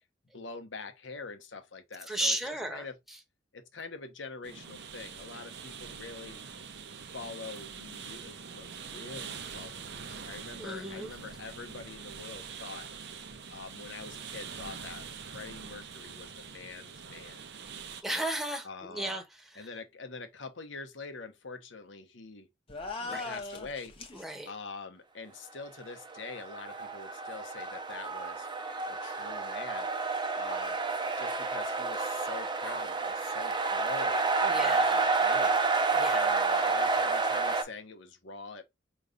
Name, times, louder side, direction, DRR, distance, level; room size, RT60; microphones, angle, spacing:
voice 1, 0.3-2.4 2.7-3.0 3.5-6.4 7.1-12.9 13.5-15.1 15.3-17.4 18.6-19.2 19.6-22.5 23.1-24.0 24.5-28.5 28.9-29.9 30.4-30.8 31.2-35.6 36.1-38.6, left 4 dB, 65° left, 1.0 m, -45 dB
voice 2, 2.1-2.8 10.6-11.1 18.0-19.2 19.5-19.7 23.0-23.3 24.1-24.5 34.4-35.1 35.9-36.3, right 1 dB, ahead, 1.0 m, -34 dB
sound 1, 4.4-18.0, right 6 dB, 60° right, 0.7 m, -44 dB
sound 2, 22.7-24.2, left 3 dB, 30° left, 1.0 m, -39 dB
sound 3, 26.1-37.6, right 4 dB, 25° right, 0.7 m, -29 dB
5.0 x 3.1 x 2.4 m
head